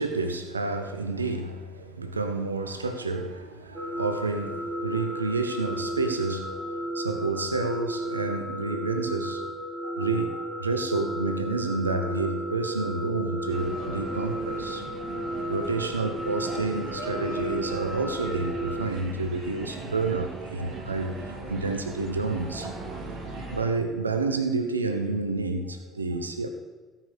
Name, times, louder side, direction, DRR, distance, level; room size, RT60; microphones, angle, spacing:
voice 1, 0.0-9.5 9.8-14.9 15.5-22.7 23.5-26.5, right 3 dB, 85° right, 0.7 m, -29 dB
sound 1, 3.7-18.8, right 1 dB, 25° right, 3.1 m, -34 dB
sound 2, 13.5-23.6, right 3 dB, 60° right, 2.4 m, -39 dB
16.5 x 5.6 x 6.5 m
figure-of-eight pair, 50°, 0 cm